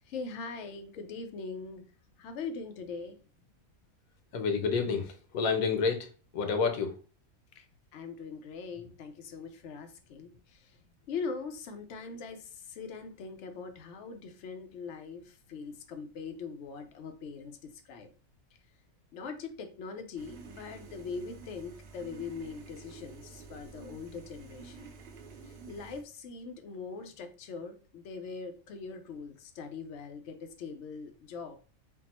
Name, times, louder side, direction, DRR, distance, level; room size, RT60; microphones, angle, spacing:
voice 1, 0.0-1.8 2.2-3.2 7.5-7.7 7.9-10.8 11.1-18.1 19.1-24.9 25.4-31.6, left 5 dB, 60° left, 6 dB, 0.9 m, -41 dB
voice 2, 4.3-6.1 6.3-6.9, left 5 dB, 80° left, 6 dB, 1.2 m, -29 dB
sound 1, 20.2-26.0, right 4 dB, 60° right, 0.8 m, -49 dB
4.4 x 2.0 x 4.1 m, 0.37 s
omnidirectional pair, 1.5 m